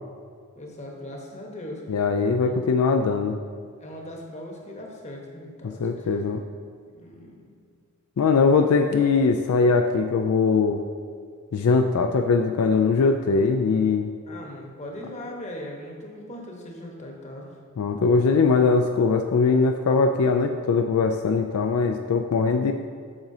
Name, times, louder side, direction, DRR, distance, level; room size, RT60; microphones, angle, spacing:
voice 1, 0.6-1.8 2.4-2.7 3.8-6.2 6.9-7.5 14.3-17.5, left 1 dB, 30° left, 0 dB, 1.0 m, -39 dB
voice 2, 1.9-3.4 5.8-6.4 8.2-10.8 11.5-14.1 17.8-22.7, left 4 dB, 70° left, 5 dB, 0.3 m, -21 dB
8.7 x 6.0 x 2.7 m, 2.1 s
head